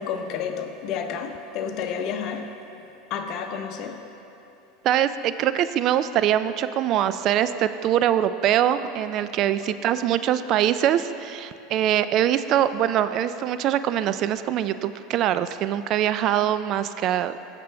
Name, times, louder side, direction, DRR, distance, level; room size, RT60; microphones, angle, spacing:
voice 1, 0.0-2.5 3.1-4.0 9.6-10.1, left 7 dB, 55° left, 5 dB, 0.8 m, -31 dB
voice 2, 4.8-17.4, right 11 dB, 50° right, 13 dB, 0.3 m, -23 dB
15.0 x 6.7 x 3.4 m, 2.8 s
supercardioid pair, 110°, 0 cm